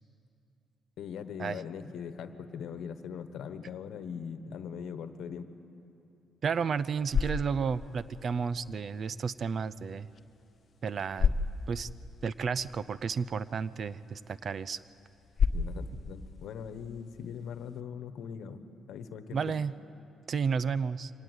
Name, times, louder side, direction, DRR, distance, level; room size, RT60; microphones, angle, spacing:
voice 1, 1.0-5.5 15.5-18.6 18.9-19.4, left 7 dB, 75° left, 10 dB, 1.2 m, -41 dB
voice 2, 6.4-10.1 10.8-11.3 11.7-11.9 12.2-14.8 19.3-19.7 20.3-21.1, right 6 dB, 50° right, 17 dB, 0.5 m, -32 dB
sound 1, 6.7-17.8, left 5 dB, 45° left, 1.1 m, -36 dB
24.5 x 18.0 x 8.2 m, 2.7 s
cardioid pair, 90°, 0 cm